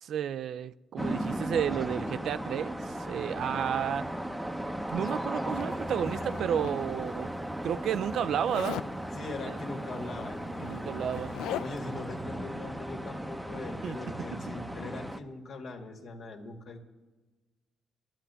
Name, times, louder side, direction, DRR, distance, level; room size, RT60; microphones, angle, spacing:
voice 1, 0.0-4.1 4.9-7.3 7.6-8.8 9.5-9.6 10.6-11.3 13.8-14.0, right 9 dB, 70° right, 0.4 m, -32 dB
sound 1, 1.0-15.2, right 1 dB, 5° right, 0.8 m, -36 dB
Zipper (clothing), 5.5-7.1 8.5-8.9 10.1-10.2 10.5-12.0, left 11 dB, 90° left, 0.4 m, -40 dB
voice 2, 9.1-11.0 11.6-16.8, left 3 dB, 60° left, 1.9 m, -41 dB
11.0 x 10.5 x 6.9 m
cardioid pair, 90°, 0 cm